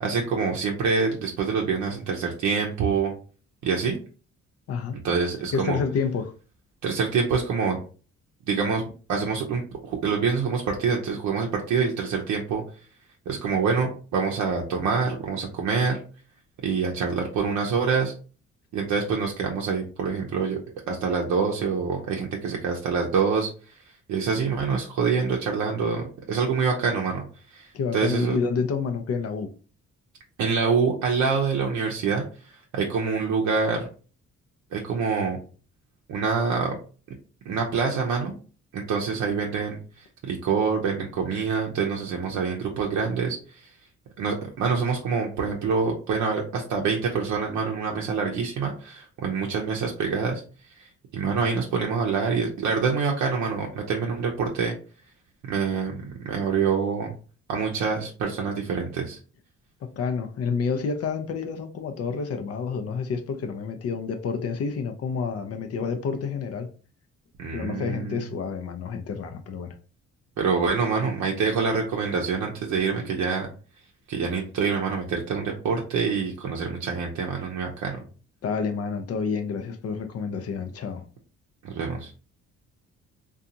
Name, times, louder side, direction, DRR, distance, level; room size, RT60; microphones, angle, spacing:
voice 1, 0.0-3.1 3.6-4.0 5.0-5.8 6.8-7.8 8.5-8.8 9.1-12.6 13.3-16.0 16.6-18.1 18.7-20.6 20.9-23.5 24.1-27.2 27.5-28.4 30.4-33.9 34.7-35.4 36.1-36.8 37.5-38.3 38.7-43.7 44.2-50.4 50.8-54.7 55.5-55.9 56.2-57.1 57.5-59.2 67.4-68.2 70.4-73.5 74.1-78.0 81.6-82.1, right 5 dB, 70° right, 0.6 m, -26 dB
voice 2, 4.7-5.0 5.5-6.3 27.7-29.5 59.8-66.7 67.5-69.7 78.4-81.0, left 5 dB, 55° left, 0.5 m, -29 dB
2.7 x 2.3 x 2.5 m
cardioid pair, 90°, 30 cm